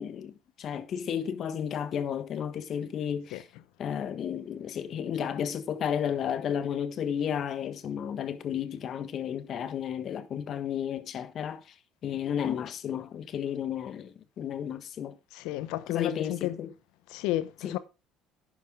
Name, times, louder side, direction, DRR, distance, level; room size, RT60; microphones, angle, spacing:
voice 1, 0.0-3.5 3.8-11.6 12.0-15.2 15.9-16.7 17.6-17.8, left 8 dB, 50° left, 1.3 m, -33 dB
voice 2, 15.3-16.6 17.1-17.8, left 15 dB, 70° left, 0.9 m, -32 dB
11.0 x 8.6 x 3.6 m
hypercardioid pair, 65°, 0 cm